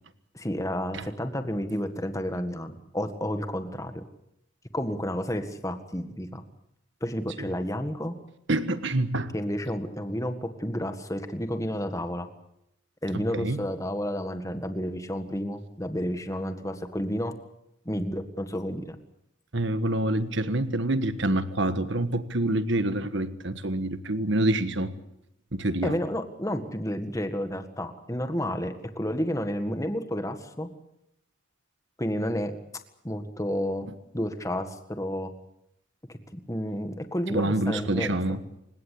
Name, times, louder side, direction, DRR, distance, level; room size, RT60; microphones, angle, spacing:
voice 1, 0.3-4.0 4.7-6.4 7.0-8.2 9.3-12.3 13.0-17.3 17.9-19.0 25.8-30.7 32.0-32.5 33.0-33.9 34.1-35.3 36.1-38.2, equal, 15° left, 8 dB, 1.8 m, -31 dB
voice 2, 8.5-9.3 13.1-13.6 19.5-24.9 25.5-26.0 37.3-38.6, right 1 dB, 60° right, 11 dB, 1.5 m, -27 dB
28.0 x 17.0 x 8.6 m, 0.82 s
head